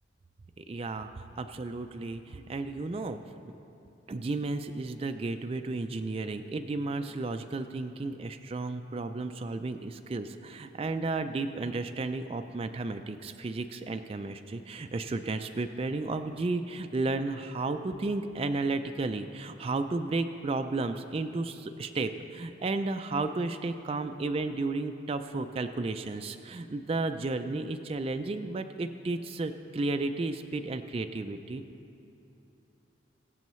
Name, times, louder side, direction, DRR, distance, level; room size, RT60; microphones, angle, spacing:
voice 1, 0.6-3.2 4.1-31.6, right 3 dB, 30° right, 7 dB, 0.3 m, -33 dB
22.0 x 7.7 x 3.1 m, 2.8 s
head